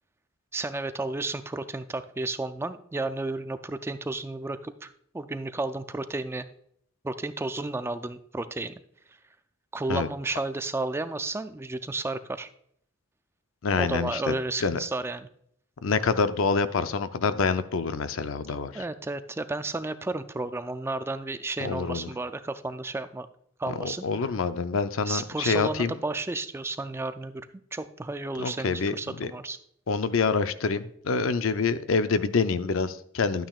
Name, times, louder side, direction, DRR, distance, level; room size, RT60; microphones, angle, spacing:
voice 1, 0.5-6.5 7.0-8.7 9.7-12.5 13.8-15.3 18.7-23.3 23.6-24.1 25.1-29.6, right 2 dB, 10° right, 11 dB, 0.3 m, -32 dB
voice 2, 13.6-14.3 14.6-14.8 15.8-18.8 21.6-22.1 23.7-26.0 28.4-29.3 29.9-33.5, left 4 dB, 80° left, 11 dB, 0.5 m, -26 dB
12.0 x 8.9 x 2.4 m, 0.68 s
head